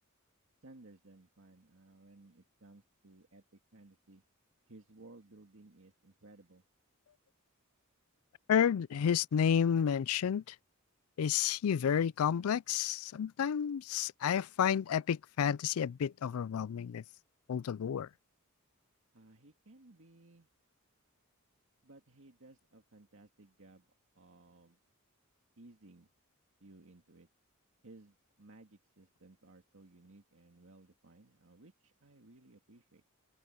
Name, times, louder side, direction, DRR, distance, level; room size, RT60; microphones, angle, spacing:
voice 1, 0.6-4.2 4.7-6.6 19.1-20.5 21.8-23.9 24.2-24.8 25.6-26.1 26.6-27.3 27.8-33.0, right 2 dB, 65° right, 2.0 m, -58 dB
voice 2, 8.5-10.6 11.2-17.0 17.5-18.1, left 8 dB, 75° left, 0.4 m, -30 dB
head